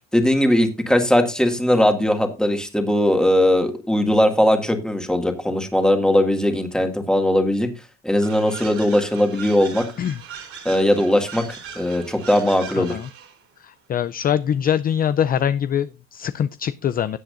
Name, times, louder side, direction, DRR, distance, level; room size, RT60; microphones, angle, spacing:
voice 1, 0.1-7.7 8.0-9.9 10.6-11.4 11.8-13.0, left 1 dB, ahead, 2.0 m, -19 dB
sound 1, 8.2-13.4, right 7 dB, 45° right, 3.0 m, -39 dB
voice 2, 12.8-13.1 13.6-17.2, left 9 dB, 30° left, 0.4 m, -23 dB
17.5 x 7.6 x 2.5 m
cardioid pair, 135°, 31 cm